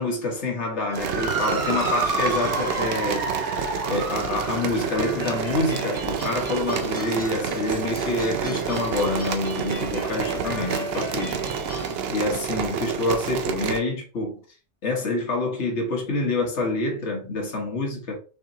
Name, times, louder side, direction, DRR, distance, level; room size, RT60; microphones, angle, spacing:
voice 1, 0.0-3.3 3.9-11.4 12.1-14.4 14.8-18.2, left 2 dB, 65° left, 1.6 m, -27 dB
Motor vehicle (road) / Siren, 0.8-9.4, right 2 dB, 30° right, 1.3 m, -32 dB
sound 1, 0.9-13.8, right 7 dB, 60° right, 0.7 m, -29 dB
sound 2, 4.9-11.9, equal, 5° left, 1.8 m, -36 dB
6.3 x 2.9 x 2.7 m
omnidirectional pair, 1.3 m